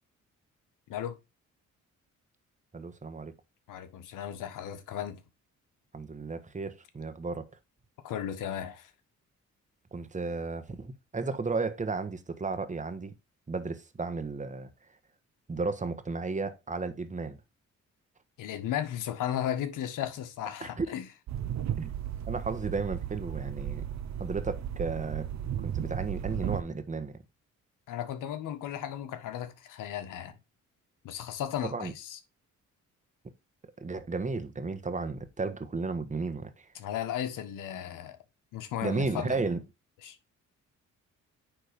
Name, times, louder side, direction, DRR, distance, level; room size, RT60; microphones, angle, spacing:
voice 1, 2.7-3.3 5.9-7.5 9.9-13.1 13.5-14.7 15.5-17.4 20.6-20.9 21.8-21.9 22.3-23.8 24.2-25.3 25.6-27.2 31.6-31.9 33.8-36.7 38.8-39.6, right 4 dB, 25° right, 1.4 m, -33 dB
voice 2, 3.7-5.2 8.0-8.9 18.4-21.1 27.9-30.4 31.0-32.2 36.7-38.2 38.5-39.4 40.0-40.2, left 10 dB, 85° left, 1.5 m, -35 dB
sound 1, 21.3-26.6, right 10 dB, 60° right, 0.8 m, -34 dB
9.4 x 3.8 x 5.2 m
cardioid pair, 80°, 31 cm